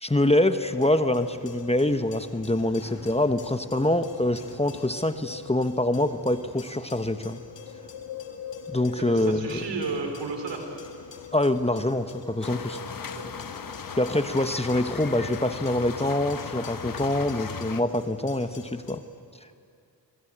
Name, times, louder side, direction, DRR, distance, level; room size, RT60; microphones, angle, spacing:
voice 1, 0.0-7.4 8.7-9.6 11.3-12.8 14.0-19.0, left 1 dB, 15° left, 9 dB, 1.2 m, -25 dB
sound 1, 0.6-19.0, left 6 dB, 90° left, 1.9 m, -43 dB
voice 2, 8.9-10.7 13.1-13.4, right 4 dB, 90° right, 4 dB, 3.9 m, -33 dB
sound 2, 12.4-17.8, left 6 dB, 50° left, 1.0 m, -37 dB
25.5 x 20.5 x 8.8 m, 2.4 s
cardioid pair, 45°, 42 cm